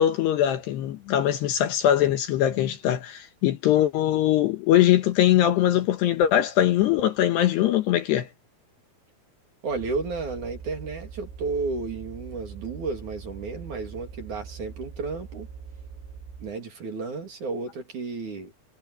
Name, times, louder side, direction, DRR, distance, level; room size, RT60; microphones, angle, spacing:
voice 1, 0.0-8.3, left 11 dB, 70° left, 3.0 m, -22 dB
voice 2, 9.6-15.5 16.4-18.5, right 4 dB, 45° right, 3.6 m, -32 dB
sound 1, 9.7-16.6, right 5 dB, 80° right, 7.8 m, -42 dB
omnidirectional pair, 5.6 m